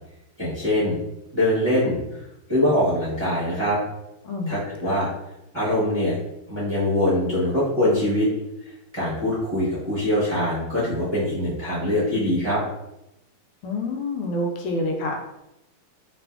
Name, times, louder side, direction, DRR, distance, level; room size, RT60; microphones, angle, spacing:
voice 1, 0.4-1.0 1.3-2.0 2.5-3.8 4.5-5.1 5.5-6.1 6.5-8.3 8.9-12.6, left 1 dB, 25° right, -11 dB, 0.6 m, -23 dB
voice 2, 4.2-5.0 13.6-15.2, left 1 dB, 90° left, 1 dB, 1.6 m, -28 dB
3.4 x 3.0 x 2.2 m, 0.91 s
omnidirectional pair, 2.4 m